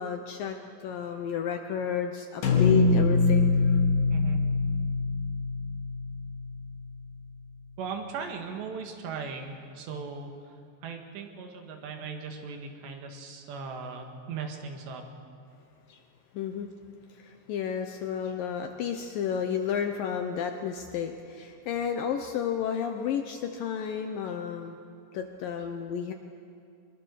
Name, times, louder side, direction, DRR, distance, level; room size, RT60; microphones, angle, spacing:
voice 1, 0.0-3.8 15.9-16.0 16.3-16.7 17.1-24.8 25.1-26.1, left 8 dB, 75° left, 5 dB, 2.1 m, -32 dB
sound 1, 2.4-6.6, left 3 dB, 55° left, 3.4 m, -24 dB
voice 2, 4.1-4.5 7.8-10.3 10.8-15.0, right 5 dB, 80° right, 3 dB, 4.0 m, -38 dB
23.5 x 22.0 x 6.5 m, 2.5 s
omnidirectional pair, 5.0 m